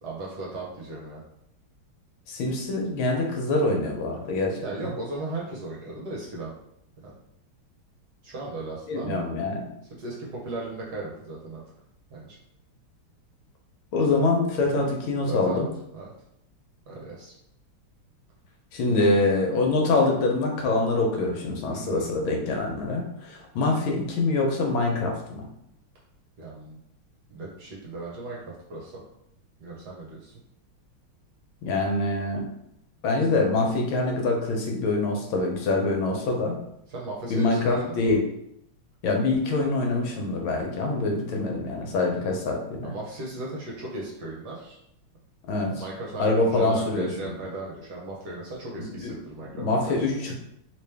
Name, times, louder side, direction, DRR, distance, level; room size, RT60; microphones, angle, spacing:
voice 1, 0.0-1.2 4.6-6.5 7.0-7.1 8.2-9.2 9.9-11.6 12.1-12.4 15.2-15.6 15.9-16.1 16.9-17.3 19.0-19.7 21.7-22.2 26.4-26.8 27.3-28.4 28.7-29.0 29.6-30.3 36.9-38.1 42.8-44.8 45.7-50.1, right 2 dB, 60° right, -3 dB, 1.2 m, -36 dB
voice 2, 2.3-4.9 8.9-9.7 13.9-15.7 18.7-25.4 31.6-32.5 33.0-36.6 37.3-38.2 39.0-42.9 45.5-45.7 46.2-47.3 49.0-49.1 49.5-50.4, left 2 dB, 75° left, 1 dB, 1.4 m, -25 dB
3.2 x 3.0 x 3.3 m, 0.77 s
omnidirectional pair, 2.3 m